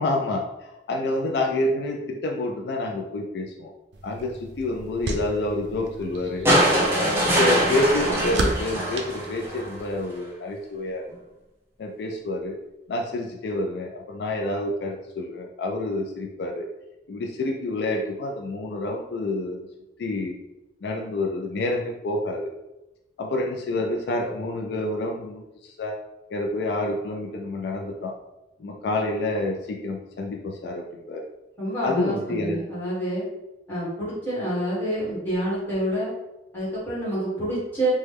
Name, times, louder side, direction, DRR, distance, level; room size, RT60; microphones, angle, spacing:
voice 1, 0.0-3.7 4.0-6.5 6.9-11.0 11.8-12.6 12.9-16.7 17.1-19.7 20.0-20.4 20.8-22.5 23.2-26.0 26.3-28.1 28.6-31.2 31.8-32.6, left 2 dB, 70° left, 1 dB, 0.3 m, -28 dB
sound 1, 3.9-10.1, right 2 dB, 80° right, 0.4 m, -34 dB
sound 2, 6.4-9.7 11.1-11.2, equal, 15° right, 0.6 m, -22 dB
voice 2, 31.6-33.3 33.7-36.1 36.5-37.9, right 1 dB, 10° left, -10 dB, 1.4 m, -27 dB
3.0 x 2.2 x 3.3 m, 0.97 s
head